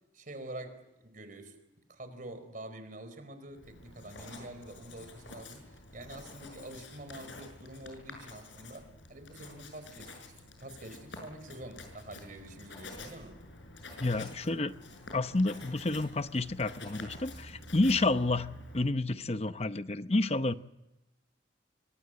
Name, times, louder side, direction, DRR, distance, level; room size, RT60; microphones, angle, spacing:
voice 1, 0.1-0.9 1.1-1.6 1.9-13.4, right 1 dB, 45° right, 4.4 m, -46 dB
Writing, 3.5-18.9, left 2 dB, 80° left, 6.8 m, -49 dB
voice 2, 14.0-14.8 15.1-20.5, left 2 dB, 35° left, 0.8 m, -30 dB
26.0 x 24.5 x 7.8 m
head